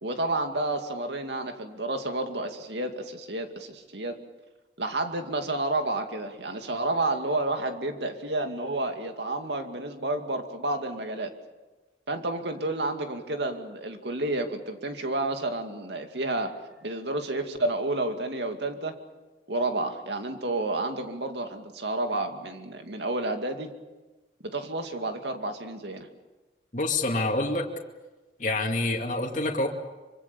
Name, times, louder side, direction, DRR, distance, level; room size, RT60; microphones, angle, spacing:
voice 1, 0.0-4.2 4.8-11.4 12.1-16.5 16.8-19.0 19.5-23.7 24.4-26.1, right 2 dB, 75° right, 5 dB, 2.4 m, -30 dB
voice 2, 26.7-27.7 28.4-29.7, left 2 dB, 45° left, 1 dB, 2.4 m, -27 dB
25.0 x 25.0 x 7.0 m, 1.2 s
head